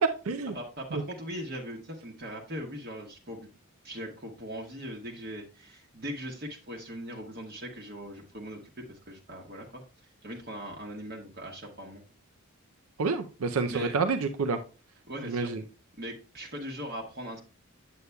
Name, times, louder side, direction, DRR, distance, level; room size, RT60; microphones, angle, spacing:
voice 1, 0.0-0.5 0.9-1.0 13.0-14.6 15.3-15.6, right 4 dB, 90° right, 8 dB, 0.5 m, -28 dB
voice 2, 0.5-3.5 3.8-12.0 13.7-13.9 15.1-15.6 16.0-17.4, equal, 45° right, 0 dB, 1.1 m, -40 dB
8.2 x 8.1 x 2.2 m, 0.33 s
head